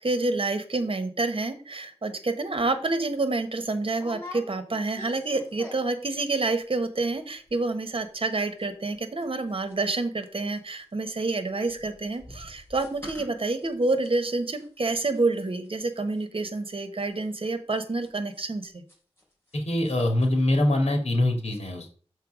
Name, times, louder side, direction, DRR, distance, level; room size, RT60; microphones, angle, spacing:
voice 1, 0.0-18.8, right 3 dB, 60° right, 9 dB, 1.3 m, -28 dB
sound 1, 2.6-2.7 3.1-3.3 3.9-6.1 6.3-6.8 7.0-7.1 7.3-7.7 7.9-10.3 10.5-19.6 19.8-20.3 20.5-20.6, left 2 dB, 25° left, 3.5 m, -47 dB
voice 2, 19.5-21.9, left 1 dB, 85° left, 3 dB, 2.3 m, -24 dB
6.7 x 4.6 x 6.1 m, 0.42 s
wide cardioid pair, 70°, 11 cm